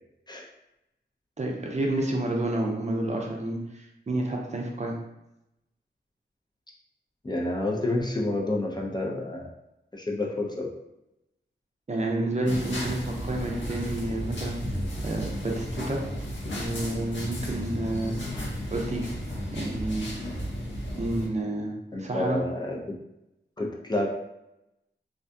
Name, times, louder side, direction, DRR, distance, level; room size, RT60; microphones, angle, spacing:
voice 1, 1.4-5.0 11.9-14.6 15.0-16.0 16.5-18.1 18.7-19.1 19.5-20.1 21.0-21.7 22.0-22.4, right 1 dB, 40° right, 0 dB, 0.5 m, -29 dB
voice 2, 7.2-9.5 9.9-10.7 21.9-23.0 23.6-24.1, left 2 dB, 25° left, -1 dB, 0.4 m, -29 dB
sound 1, 12.4-21.3, equal, 85° left, 0.6 m, -33 dB
2.5 x 2.2 x 2.5 m, 0.87 s
wide cardioid pair, 70°, 19 cm